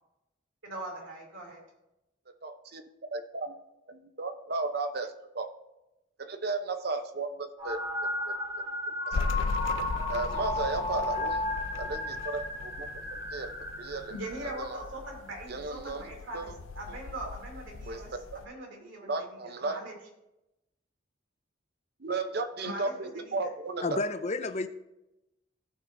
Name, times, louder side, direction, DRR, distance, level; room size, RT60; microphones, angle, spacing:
voice 1, 0.6-1.6 14.1-20.0 22.6-23.5, right 1 dB, 85° right, 0 dB, 2.8 m, -41 dB
voice 2, 2.4-2.8 3.1-3.6 3.9-5.5 6.2-8.6 9.1-9.2 10.1-11.5 11.8-12.9 13.3-14.1 14.4-14.8 15.5-16.0 16.3-16.5 17.9-18.0 19.0-19.8 22.0-24.0, right 3 dB, 55° right, 8 dB, 0.8 m, -35 dB
sound 1, 7.6-14.9, left 2 dB, 20° right, 3.1 m, -34 dB
sound 2, 9.1-18.5, left 3 dB, 90° left, 0.5 m, -38 dB
voice 3, 23.8-24.7, left 3 dB, 35° left, 10 dB, 0.5 m, -30 dB
16.5 x 6.0 x 2.6 m, 0.92 s
head